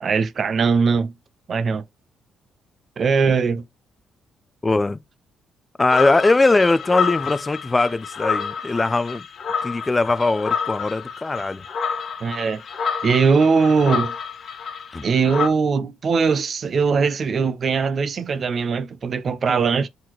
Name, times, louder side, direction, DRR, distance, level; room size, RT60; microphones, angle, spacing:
voice 1, 0.0-1.1 1.5-1.8 3.0-3.6 12.2-12.6 13.0-14.1 15.0-19.9, right 5 dB, 50° right, 0.6 m, -20 dB
voice 2, 4.6-5.0 5.8-9.2 9.6-11.6 14.9-15.0, left 3 dB, 20° left, 0.4 m, -20 dB
sound 1, 5.9-15.5, left 6 dB, 55° left, 0.9 m, -28 dB
4.4 x 4.0 x 3.0 m
cardioid pair, 90°, 0 cm